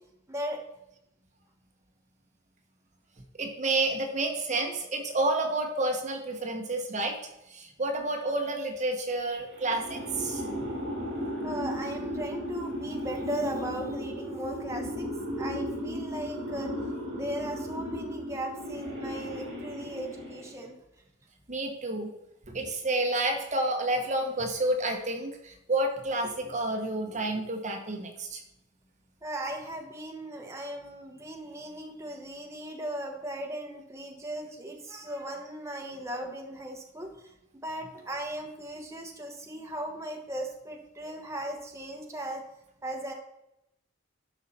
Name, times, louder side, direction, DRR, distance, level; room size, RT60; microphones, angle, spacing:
voice 1, 0.3-0.6 11.4-15.1 15.4-16.7 17.1-20.8 29.2-37.3 37.6-42.4 42.8-43.1, right 1 dB, 15° right, 1 dB, 1.1 m, -37 dB
voice 2, 3.4-7.1 7.5-10.6 21.5-22.1 22.5-28.4, right 2 dB, 40° right, 3 dB, 1.1 m, -30 dB
sound 1, 9.5-20.7, equal, 75° right, 3.0 m, -35 dB
11.5 x 5.7 x 4.2 m, 0.85 s
head